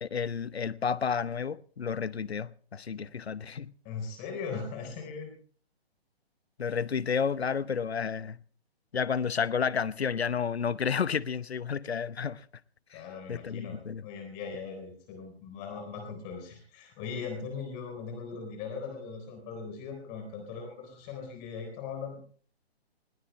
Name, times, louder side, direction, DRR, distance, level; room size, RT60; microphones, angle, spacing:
voice 1, 0.0-3.7 6.6-8.4 8.9-12.4 12.9-13.0 13.3-14.0, left 6 dB, 75° left, 0.9 m, -31 dB
voice 2, 3.8-5.3 12.9-22.2, left 5 dB, 25° left, 3.8 m, -39 dB
20.0 x 18.0 x 3.1 m
figure-of-eight pair, 135°, 32 cm